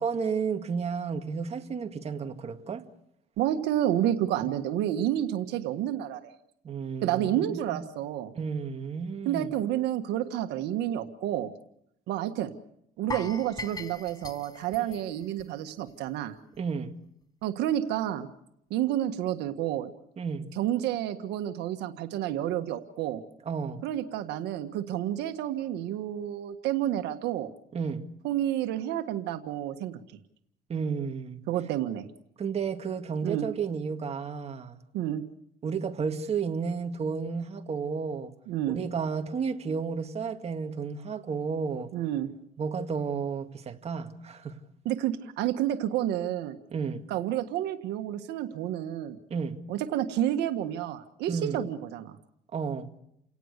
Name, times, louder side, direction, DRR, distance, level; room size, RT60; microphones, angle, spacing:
voice 1, 0.0-2.9 4.4-4.5 6.6-7.8 8.3-9.5 16.6-16.9 20.2-20.5 23.5-23.9 27.7-28.1 30.7-31.4 32.4-34.8 35.6-38.3 38.7-41.9 42.6-44.6 46.7-47.0 49.3-49.6 51.3-51.6 52.5-52.9, right 5 dB, 40° right, 2.0 m, -32 dB
voice 2, 3.4-6.3 7.0-8.3 9.2-11.5 12.1-12.5 13.0-16.4 17.4-18.3 18.7-19.9 20.6-23.2 23.8-27.5 28.2-30.0 31.5-32.1 33.2-33.5 34.9-35.2 38.5-38.8 41.9-42.3 44.8-46.6 47.1-49.2 49.7-52.2, right 12 dB, 85° right, 1.6 m, -30 dB
sound 1, 13.1-16.1 16.4-16.6 17.0-17.1, left 3 dB, 20° left, 1.1 m, -41 dB
30.0 x 18.0 x 6.7 m
cardioid pair, 110°, 17 cm